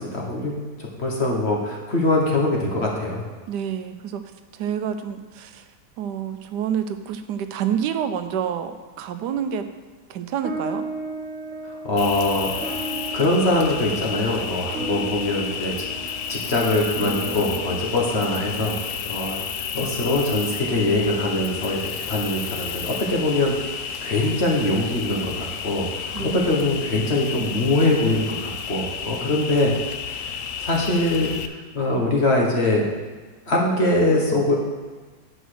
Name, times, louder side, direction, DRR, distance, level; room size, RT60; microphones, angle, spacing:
voice 1, 0.0-3.2 11.6-12.7 13.1-15.7 16.0-18.8 19.1-19.4 19.7-29.7 30.1-32.9 33.5-34.5, left 2 dB, 40° left, -2 dB, 1.4 m, -23 dB
voice 2, 3.5-4.2 4.5-5.7 6.0-9.7 10.1-10.9 26.1-26.7, right 8 dB, 80° right, 9 dB, 1.2 m, -28 dB
sound 1, 10.4-19.1, right 2 dB, 50° right, 1.3 m, -35 dB
Cricket, 12.0-31.5, left 7 dB, 65° left, 0.8 m, -31 dB
8.1 x 5.0 x 6.3 m, 1.3 s
omnidirectional pair, 1.8 m